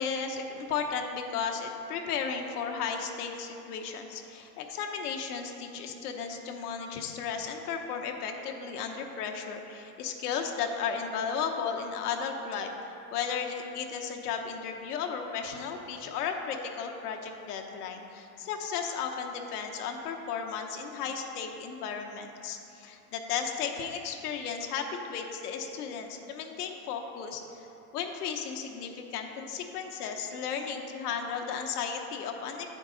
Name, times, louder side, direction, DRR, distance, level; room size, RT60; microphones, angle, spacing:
voice 1, 0.0-27.7 27.9-32.7, left 6 dB, 80° left, 3 dB, 0.9 m, -34 dB
9.9 x 4.6 x 3.8 m, 2.9 s
supercardioid pair, 145°, 46 cm